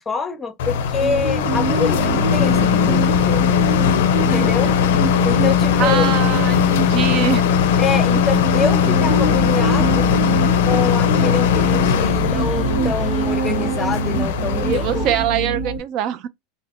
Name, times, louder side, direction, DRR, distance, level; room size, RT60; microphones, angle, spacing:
voice 1, 0.0-3.6 4.2-4.7 5.2-6.1 7.8-10.1 10.6-15.1, left 5 dB, 15° left, 0.6 m, -25 dB
sound 1, 0.6-15.3, left 8 dB, 75° left, 0.4 m, -19 dB
sound 2, 1.0-15.8, right 4 dB, 75° right, 1.0 m, -25 dB
voice 2, 5.8-7.5 14.7-16.3, right 10 dB, 50° right, 0.4 m, -23 dB
3.4 x 2.0 x 3.5 m
supercardioid pair, 130°, 0 cm